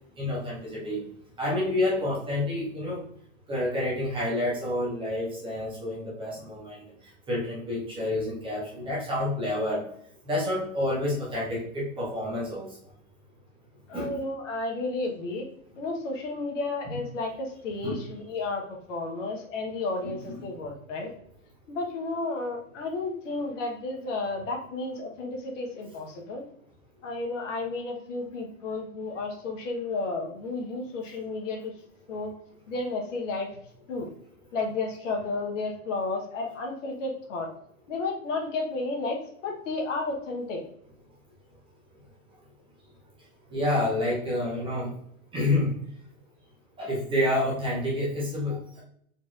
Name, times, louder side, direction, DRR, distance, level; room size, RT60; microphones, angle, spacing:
voice 1, 0.2-1.0 1.4-3.0 3.5-6.8 7.3-9.8 10.2-12.8 13.9-14.2 17.8-18.0 20.3-20.4 43.5-44.9 45.3-45.7 46.8-48.8, left 1 dB, 10° right, -5 dB, 0.7 m, -28 dB
voice 2, 13.9-15.5 15.8-21.1 21.7-26.4 27.0-31.7 32.1-32.3 32.7-33.5 33.9-34.1 34.5-37.5 37.9-40.6, left 3 dB, 60° left, 1 dB, 1.2 m, -32 dB
4.1 x 2.8 x 2.4 m, 0.67 s
hypercardioid pair, 135°, 43 cm